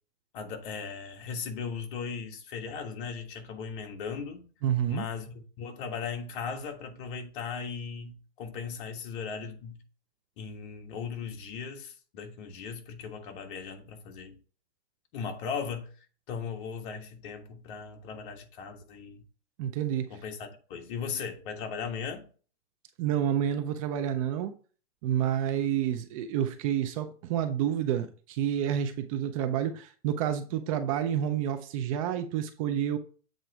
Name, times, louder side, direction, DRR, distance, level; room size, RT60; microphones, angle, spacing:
voice 1, 0.3-4.5 4.9-9.8 10.4-14.4 15.1-15.9 16.3-19.2 20.1-22.3, left 6 dB, 45° left, 1.5 m, -38 dB
voice 2, 4.6-5.1 19.6-20.2 23.0-24.5 25.0-33.0, right 10 dB, 30° right, 0.5 m, -29 dB
7.8 x 3.9 x 4.7 m
hypercardioid pair, 145°, 35 cm